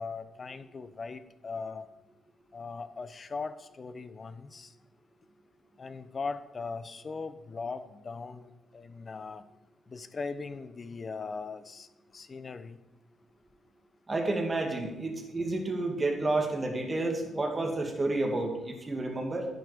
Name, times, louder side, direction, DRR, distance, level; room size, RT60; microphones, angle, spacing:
voice 1, 0.0-1.8 2.5-4.7 5.8-9.4 9.9-11.9 12.1-12.8, left 4 dB, 40° left, 12 dB, 0.9 m, -39 dB
voice 2, 14.1-19.5, right 2 dB, 25° right, 2 dB, 2.4 m, -30 dB
10.5 x 8.2 x 5.1 m, 0.98 s
cardioid pair, 75°, 0 cm